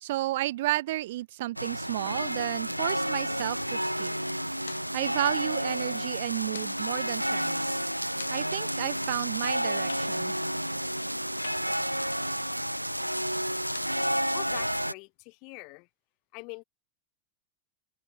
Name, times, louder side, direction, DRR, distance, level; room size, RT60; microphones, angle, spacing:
voice 1, 0.0-4.1 4.9-7.8 8.3-10.4, right 16 dB, 55° right, 0.8 m, -32 dB
sound 1, 1.6-14.9, equal, 90° right, 0.4 m, -30 dB
sound 2, 4.1-14.2, left 7 dB, 70° left, 4.2 m, -52 dB
voice 2, 14.3-15.9 16.3-16.6, left 32 dB, 45° left, 3.1 m, -43 dB
open air
figure-of-eight pair, 90°, 0 cm